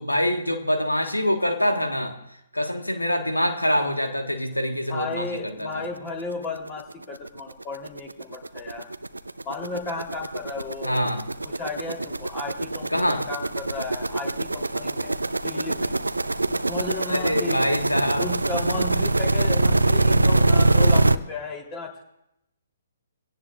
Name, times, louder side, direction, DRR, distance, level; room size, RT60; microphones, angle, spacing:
voice 1, 0.0-2.2 2.5-5.9 10.8-11.2 12.9-13.3 17.1-18.3, equal, 90° left, 5 dB, 1.5 m, -25 dB
voice 2, 4.9-8.9 9.4-10.9 11.6-15.2 15.4-16.0 16.7-17.6 18.2-22.0, left 3 dB, 20° left, 2 dB, 3.3 m, -34 dB
sound 1, 5.7-5.8 6.2-6.3 6.6-21.2, right 2 dB, 80° right, 0.6 m, -24 dB
23.5 x 17.0 x 2.5 m, 0.84 s
figure-of-eight pair, 130°, 0 cm